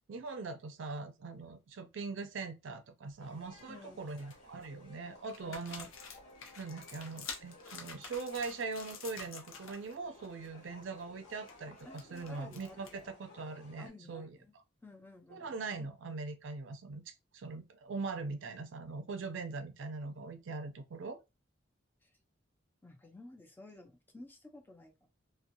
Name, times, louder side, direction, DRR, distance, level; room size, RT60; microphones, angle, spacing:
voice 1, 0.1-5.9 6.6-14.4 15.3-17.0 17.3-21.2, right 4 dB, 65° right, 0.4 m, -41 dB
sound 1, 3.1-3.6 4.0-4.7 5.2-9.9 10.2-10.5 10.8-13.1, left 5 dB, 85° left, 0.6 m, -49 dB
sound 2, 3.2-13.9, left 1 dB, 55° left, 1.4 m, -57 dB
voice 2, 3.7-4.0 5.4-5.9 11.8-13.2 13.8-14.5 14.8-15.9 22.0-22.2 22.8-25.1, left 2 dB, 10° left, 0.5 m, -54 dB
2.6 x 2.1 x 2.6 m
head